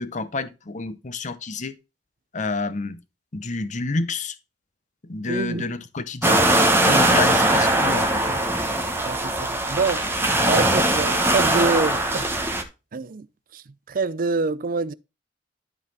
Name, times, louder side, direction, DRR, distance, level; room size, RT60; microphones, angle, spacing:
voice 1, 0.0-1.7 2.3-3.0 3.3-4.3 5.1-6.4 6.9-8.2, left 3 dB, 40° left, 0.8 m, -29 dB
voice 2, 5.3-5.6 6.9-7.1 8.3-8.4 9.0-10.0 10.5-12.3 12.9-13.3 13.5-14.9, right 4 dB, 50° right, 0.5 m, -26 dB
sound 1, 6.2-12.6, right 1 dB, 15° right, 1.1 m, -20 dB
12.5 x 4.1 x 4.0 m
head